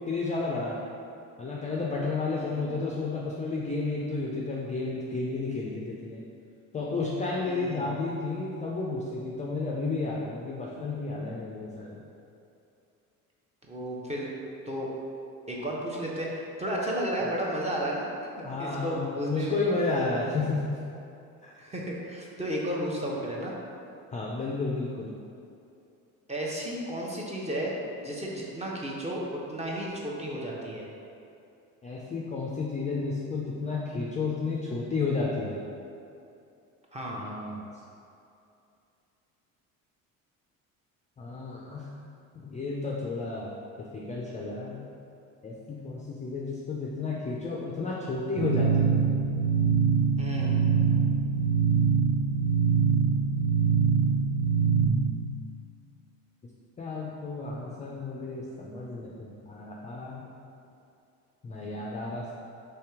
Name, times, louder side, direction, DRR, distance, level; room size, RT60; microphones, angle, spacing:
voice 1, 0.1-0.8 1.4-6.2 6.7-12.0 18.4-20.6 21.4-21.5 24.1-25.1 31.8-35.6 37.1-37.6 41.2-41.8 42.3-44.8 45.4-49.0 56.8-60.3 61.4-62.3, left 3 dB, 20° left, -4 dB, 0.3 m, -32 dB
voice 2, 2.3-2.7 7.5-8.0 13.7-14.3 14.7-15.0 15.5-18.1 18.4-19.6 21.6-23.5 26.3-30.9 36.9-37.2 50.2-50.7, right 1 dB, 15° right, -3 dB, 0.7 m, -33 dB
sound 1, 48.4-54.9, right 6 dB, 75° right, 0.9 m, -24 dB
3.3 x 2.8 x 3.5 m, 2.6 s
hypercardioid pair, 70°, 43 cm